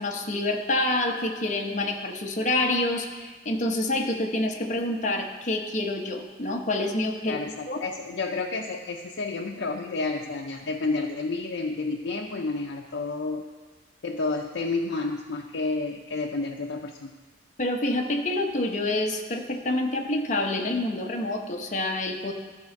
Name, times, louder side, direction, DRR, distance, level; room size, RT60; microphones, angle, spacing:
voice 1, 0.0-7.4 7.7-7.8 17.6-22.3, left 2 dB, 40° left, 2 dB, 0.9 m, -27 dB
voice 2, 7.2-13.4 14.0-17.1, left 3 dB, 75° left, 0 dB, 0.6 m, -30 dB
12.5 x 4.3 x 5.8 m, 1.4 s
head